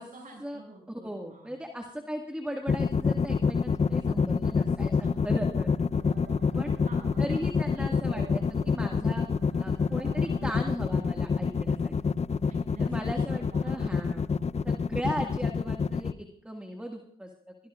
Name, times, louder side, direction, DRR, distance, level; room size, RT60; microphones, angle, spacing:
voice 1, 0.0-1.6 5.0-6.2 6.8-7.9 12.5-13.9 14.3-14.8, right 2 dB, 45° right, -1 dB, 6.9 m, -49 dB
voice 2, 0.9-4.9 5.2-5.7 6.5-6.7 7.2-9.3 9.6-11.9 12.8-14.2 14.6-17.3, equal, 5° right, 2 dB, 1.9 m, -37 dB
sound 1, 2.7-16.1, left 5 dB, 35° left, 0.6 m, -26 dB
sound 2, 5.9-11.2, right 6 dB, 75° right, 1.5 m, -51 dB
22.0 x 17.0 x 2.5 m, 0.66 s
supercardioid pair, 55°, 19 cm